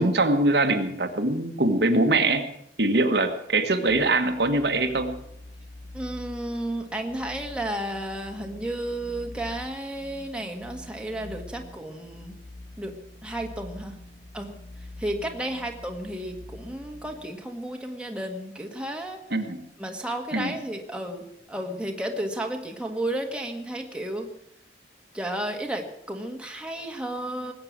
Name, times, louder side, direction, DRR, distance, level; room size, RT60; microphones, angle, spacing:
voice 1, 0.0-2.4 2.8-5.1 19.3-19.6 20.3-20.5, right 2 dB, 70° right, 5 dB, 1.6 m, -23 dB
sound 1, 3.9-17.2, left 1 dB, 85° left, 2.4 m, -45 dB
voice 2, 5.9-12.3 12.8-12.9 13.2-13.9 14.3-14.5 15.0-19.2 19.8-24.3 25.1-27.5, right 1 dB, 5° right, 2 dB, 1.7 m, -32 dB
20.0 x 8.9 x 7.5 m, 0.76 s
head